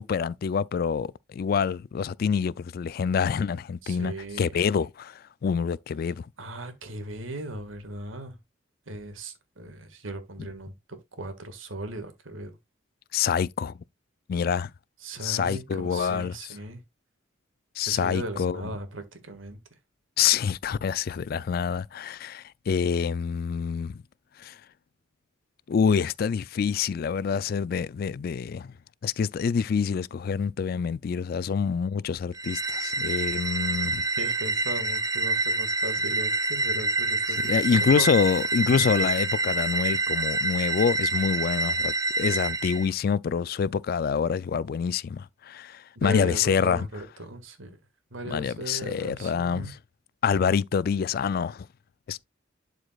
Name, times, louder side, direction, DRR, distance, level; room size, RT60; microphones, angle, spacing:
voice 1, 0.0-6.3 13.1-13.7 14.3-14.7 15.2-16.5 17.8-18.6 20.2-24.0 24.4-24.6 25.7-28.7 29.0-34.0 37.3-46.9 48.3-49.8 50.2-51.7 52.1-52.2, left 6 dB, 50° left, 0.3 m, -26 dB
voice 2, 3.8-4.5 6.4-8.4 8.9-10.7 11.1-12.5 15.0-16.8 17.9-19.6 34.2-38.1 46.0-47.8 48.1-49.7, right 1 dB, 85° right, 1.8 m, -37 dB
sound 1, 32.3-42.9, right 3 dB, 20° right, 0.7 m, -27 dB
11.5 x 4.9 x 2.3 m
head